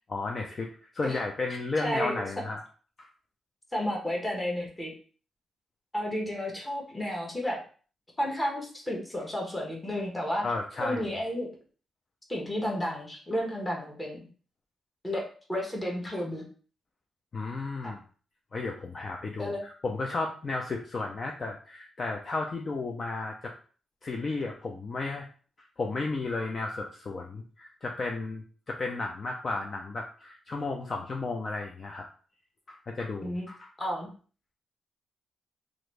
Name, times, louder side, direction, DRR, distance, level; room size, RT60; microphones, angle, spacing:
voice 1, 0.1-2.6 3.0-3.1 10.4-11.0 17.3-18.0 18.5-23.5 24.0-25.3 25.8-32.0 32.7-33.7, left 3 dB, 45° left, 1 dB, 0.5 m, -33 dB
voice 2, 1.8-2.3 3.7-4.9 5.9-7.6 8.2-10.4 10.8-11.5 12.3-14.3 15.0-15.2 15.5-16.4 17.8-18.0 19.4-19.6 33.2-33.4 33.8-34.1, equal, 15° left, -1 dB, 1.2 m, -32 dB
3.0 x 2.6 x 3.2 m, 0.40 s
cardioid pair, 85°, 0 cm